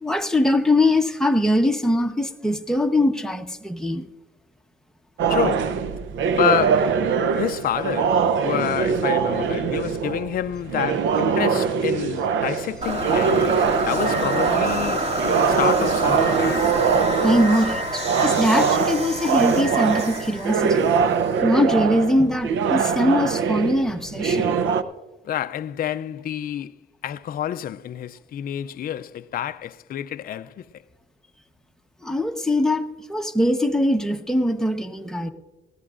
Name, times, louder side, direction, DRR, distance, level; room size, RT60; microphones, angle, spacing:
voice 1, 0.0-4.0 15.5-15.6 17.2-20.9 21.4-24.6 32.0-35.3, left 1 dB, 5° left, 1.0 m, -22 dB
sound 1, 5.2-24.8, right 6 dB, 75° right, 0.7 m, -23 dB
voice 2, 5.3-5.8 6.4-7.0 7.3-15.1 15.6-16.7 25.2-26.8 27.0-30.7, left 10 dB, 50° left, 0.4 m, -28 dB
sound 2, 12.8-21.8, right 1 dB, 30° right, 2.2 m, -27 dB
20.0 x 14.5 x 2.5 m
cardioid pair, 90°, 20 cm